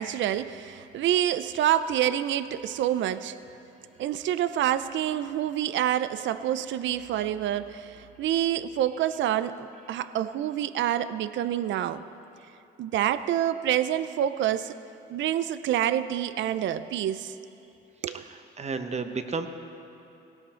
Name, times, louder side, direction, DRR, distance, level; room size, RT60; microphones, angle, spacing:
voice 1, 0.0-3.4 4.0-12.0 12.8-14.7 15.1-17.3 18.0-18.1, right 11 dB, 70° right, 13 dB, 0.5 m, -27 dB
voice 2, 18.1-19.5, right 4 dB, 35° right, 8 dB, 1.1 m, -33 dB
18.0 x 17.0 x 4.4 m, 2.8 s
cardioid pair, 90°, 20 cm